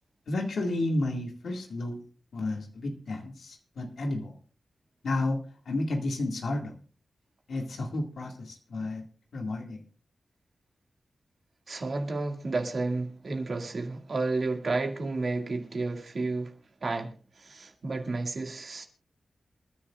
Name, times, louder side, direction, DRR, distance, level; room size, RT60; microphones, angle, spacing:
voice 1, 0.3-2.0 2.3-4.4 5.0-5.4 5.7-6.7 7.5-9.0 9.3-9.8, left 2 dB, 85° left, 2.1 m, -31 dB
voice 2, 11.7-16.6 16.8-18.9, right 3 dB, 60° right, 2.1 m, -31 dB
27.5 x 10.0 x 2.4 m
cardioid pair, 70°, 0 cm